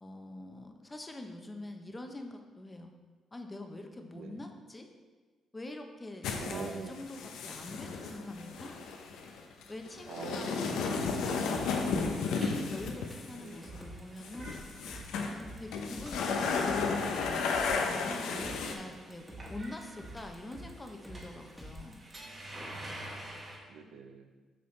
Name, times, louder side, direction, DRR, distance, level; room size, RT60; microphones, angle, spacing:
voice 1, 0.0-2.9 3.3-4.9 5.5-8.8 9.7-14.5 15.2-17.5 18.1-22.0, left 2 dB, 20° left, 5 dB, 0.8 m, -45 dB
sound 1, 6.2-13.8 14.2-15.4 15.7-18.8, left 4 dB, 90° left, 0.7 m, -33 dB
voice 2, 6.4-6.9 10.1-10.6 13.4-13.6 22.7-23.2 23.7-24.3, right 5 dB, 80° right, 5 dB, 0.7 m, -43 dB
sound 2, 11.0-22.1, equal, 5° right, 1.5 m, -48 dB
sound 3, 11.4-23.6, right 1 dB, 35° right, 1.7 m, -50 dB
8.3 x 5.5 x 3.3 m, 1.4 s
cardioid pair, 90°, 0 cm